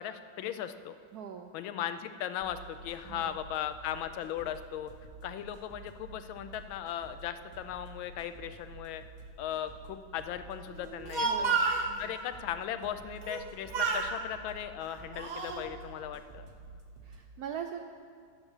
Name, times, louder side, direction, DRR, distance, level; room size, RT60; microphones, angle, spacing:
voice 1, 0.0-1.0 1.5-4.9 5.2-9.0 9.4-11.5 12.0-16.5, left 10 dB, 90° left, 11 dB, 1.4 m, -38 dB
voice 2, 1.1-1.5 3.0-3.3 11.2-12.1 17.0-17.8, right 8 dB, 80° right, 5 dB, 0.8 m, -42 dB
sound 1, 2.4-17.2, right 3 dB, 35° right, 0.7 m, -51 dB
Speech, 10.8-11.9 13.2-13.5 13.7-14.1 14.8-15.6, right 4 dB, 55° right, 1.1 m, -30 dB
10.5 x 6.7 x 7.2 m, 2.1 s
omnidirectional pair, 2.1 m